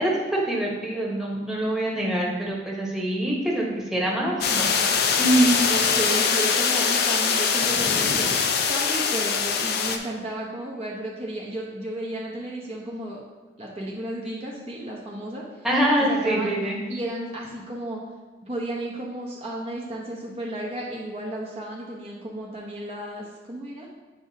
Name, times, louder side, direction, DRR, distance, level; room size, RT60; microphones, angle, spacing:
voice 1, 0.0-4.7 5.1-5.6 15.6-16.8, right 1 dB, 5° right, -4 dB, 1.2 m, -24 dB
sound 1, 4.4-10.0, left 6 dB, 60° left, 0.5 m, -22 dB
voice 2, 5.7-8.3 8.7-13.2 13.6-15.4 16.0-16.5 16.9-18.0 18.5-23.9, right 1 dB, 35° right, -4 dB, 0.9 m, -33 dB
8.8 x 4.7 x 2.8 m, 1.2 s
head